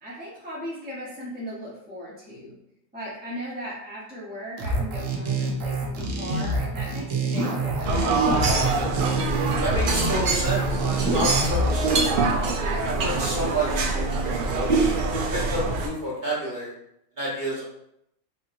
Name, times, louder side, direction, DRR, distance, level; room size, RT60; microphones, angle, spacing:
voice 1, 0.0-2.5 2.9-8.1, equal, 10° right, -7 dB, 0.7 m, -37 dB
sound 1, 4.6-12.0, right 2 dB, 85° right, 1.1 m, -26 dB
sound 2, 7.8-15.9, right 3 dB, 60° right, 0.5 m, -25 dB
voice 2, 9.6-12.3 12.8-14.1 14.5-16.7 17.2-17.6, right 1 dB, 40° right, -7 dB, 1.2 m, -30 dB
3.7 x 2.7 x 2.5 m, 0.78 s
omnidirectional pair, 1.3 m